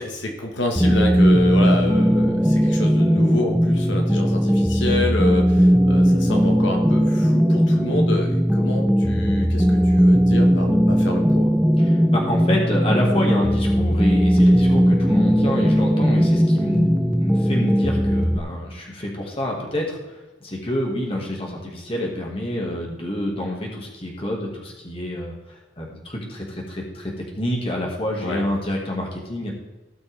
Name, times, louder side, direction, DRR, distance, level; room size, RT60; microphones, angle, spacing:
voice 1, 0.0-11.5 28.2-28.4, left 2 dB, 75° left, 2 dB, 1.7 m, -28 dB
sound 1, 0.8-18.4, equal, 5° right, 0.6 m, -18 dB
voice 2, 11.8-20.0 20.4-25.4 25.8-29.5, left 1 dB, 30° left, -1 dB, 2.0 m, -27 dB
17.0 x 6.2 x 3.5 m, 1.1 s
head